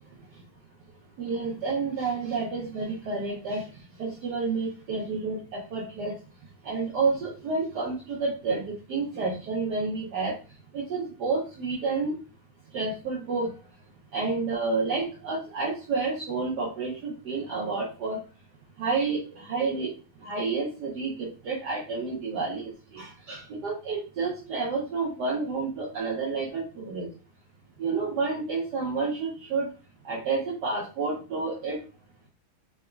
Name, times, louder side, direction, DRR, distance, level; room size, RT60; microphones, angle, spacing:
voice 1, 1.2-3.6 4.0-6.1 6.6-10.4 10.7-12.2 12.7-13.5 14.1-18.2 18.8-19.9 20.2-27.1 27.8-29.7 30.0-31.8, right 4 dB, 60° right, -4 dB, 1.3 m, -30 dB
4.0 x 3.5 x 2.2 m, 0.34 s
omnidirectional pair, 2.2 m